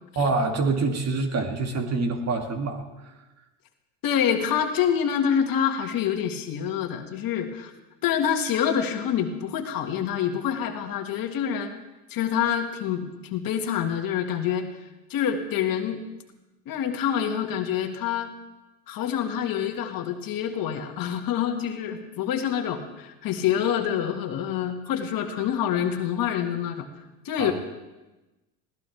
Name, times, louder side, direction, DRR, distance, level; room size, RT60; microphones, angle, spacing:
voice 1, 0.2-3.2 27.4-27.5, right 3 dB, 35° right, 4 dB, 2.2 m, -26 dB
voice 2, 4.0-7.7 8.0-11.7 12.1-14.7 15.1-16.1 16.7-18.3 18.9-26.9 27.2-27.5, left 9 dB, 50° left, 5 dB, 1.9 m, -26 dB
20.5 x 17.0 x 3.5 m, 1.1 s
supercardioid pair, 90°, 44 cm